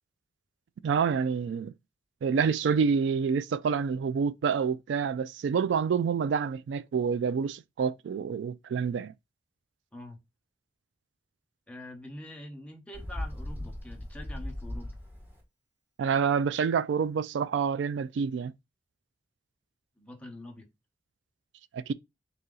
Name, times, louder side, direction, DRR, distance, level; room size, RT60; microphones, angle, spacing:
voice 1, 0.8-1.7 2.2-9.1 16.0-18.5 21.7-21.9, right 6 dB, 90° right, 0.3 m, -27 dB
voice 2, 11.7-14.9 20.0-20.7, left 1 dB, 5° left, 1.0 m, -45 dB
Bird, 12.9-15.4, left 1 dB, 10° right, 1.3 m, -38 dB
4.1 x 2.8 x 3.7 m
head